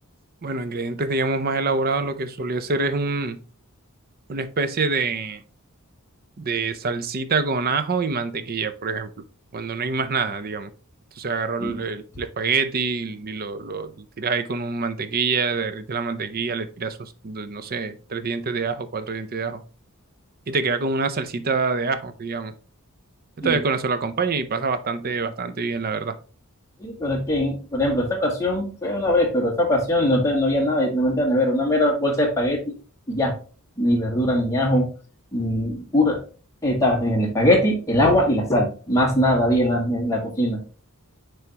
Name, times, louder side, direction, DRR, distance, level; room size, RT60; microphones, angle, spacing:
voice 1, 0.4-3.4 4.3-5.4 6.4-9.1 9.5-10.7 11.2-19.6 20.5-22.5 23.4-26.2, right 4 dB, 45° right, 11 dB, 0.6 m, -26 dB
voice 2, 26.8-32.7 33.1-33.3 33.8-34.9 35.3-36.2 36.6-40.6, left 1 dB, 15° left, -1 dB, 1.7 m, -21 dB
9.4 x 3.5 x 2.9 m, 0.37 s
head